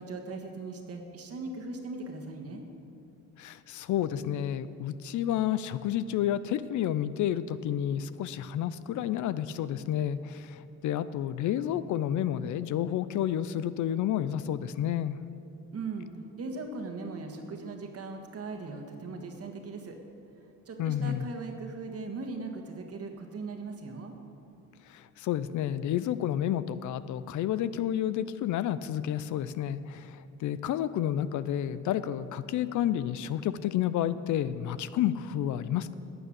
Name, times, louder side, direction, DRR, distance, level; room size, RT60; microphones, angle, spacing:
voice 1, 0.0-2.6 15.7-16.1 16.4-20.0 20.6-24.1, right 3 dB, 50° right, 3 dB, 1.7 m, -39 dB
voice 2, 3.4-15.2 20.8-21.3 24.9-35.9, left 10 dB, 75° left, 15 dB, 0.5 m, -30 dB
11.5 x 6.9 x 8.6 m, 2.7 s
cardioid pair, 90°, 30 cm